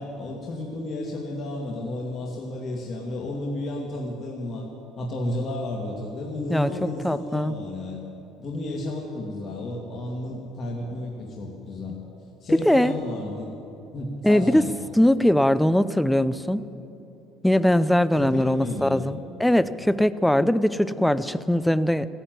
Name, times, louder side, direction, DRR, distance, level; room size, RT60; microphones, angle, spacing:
voice 1, 0.0-4.7 5.0-8.0 8.4-12.0 12.4-13.5 13.9-14.7 18.1-19.1, left 1 dB, 45° left, -2 dB, 2.0 m, -32 dB
voice 2, 6.5-7.5 12.7-12.9 14.2-14.6 14.9-16.6 17.4-22.1, left 1 dB, 5° left, 15 dB, 0.5 m, -21 dB
15.0 x 10.0 x 9.2 m, 2.9 s
cardioid pair, 125°, 0 cm